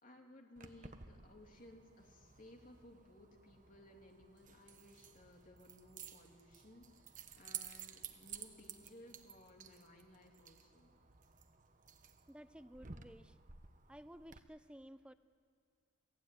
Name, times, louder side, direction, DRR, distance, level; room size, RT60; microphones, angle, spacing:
voice 1, 0.0-10.9, left 1 dB, 40° left, 1 dB, 3.1 m, -60 dB
Keys jangling, 0.6-14.4, right 7 dB, 35° right, 1.2 m, -54 dB
voice 2, 12.3-13.4 13.9-15.1, equal, 5° right, 12 dB, 0.6 m, -55 dB
29.0 x 17.5 x 9.4 m, 2.3 s
head